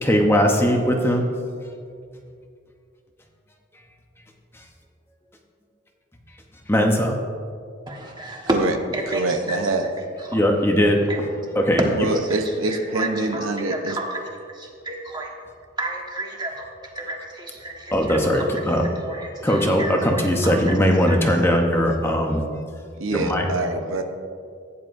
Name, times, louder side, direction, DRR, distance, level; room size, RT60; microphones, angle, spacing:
voice 1, 0.0-1.3 4.5-4.6 6.7-7.2 10.3-11.0 11.6-11.8 17.9-18.9 19.4-22.4 23.1-23.5, equal, 10° left, 1 dB, 0.8 m, -19 dB
voice 2, 7.9-8.5 8.9-9.6 10.2-10.4 11.1-11.2 12.0-15.3 15.8-16.7 16.9-18.8 19.0-20.8 21.1-21.2, right 1 dB, 20° right, 0 dB, 1.4 m, -31 dB
voice 3, 9.1-9.9 12.0-14.0 23.0-24.0, right 2 dB, 90° right, 5 dB, 0.9 m, -25 dB
16.0 x 9.7 x 2.6 m, 2.3 s
head